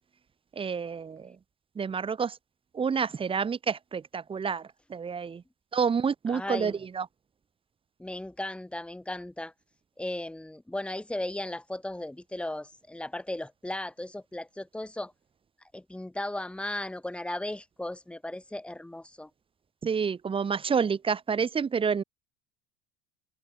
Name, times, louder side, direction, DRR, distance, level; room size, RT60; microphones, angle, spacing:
voice 1, 0.6-1.4 1.8-2.4 2.7-5.4 5.7-7.1 19.8-22.0, right 6 dB, 25° right, 2.6 m, -29 dB
voice 2, 6.3-6.8 8.0-9.5 10.0-15.1 15.7-19.3, left 1 dB, 5° left, 1.9 m, -36 dB
supercardioid pair, 100°, 21 cm